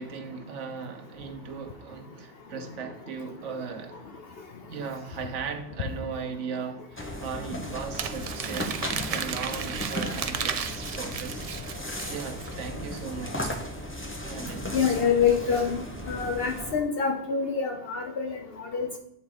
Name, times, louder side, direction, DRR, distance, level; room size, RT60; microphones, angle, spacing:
voice 1, 0.0-4.0 4.7-11.5 11.8-13.6 14.2-15.0, right 5 dB, 90° right, 1.2 m, -37 dB
sound 1, 7.0-16.7, equal, 10° left, 0.9 m, -36 dB
Crumpling crinkling, 8.0-12.5, right 7 dB, 60° right, 0.3 m, -34 dB
voice 2, 14.7-18.9, left 6 dB, 60° left, 0.9 m, -26 dB
8.1 x 3.7 x 4.9 m
omnidirectional pair, 1.2 m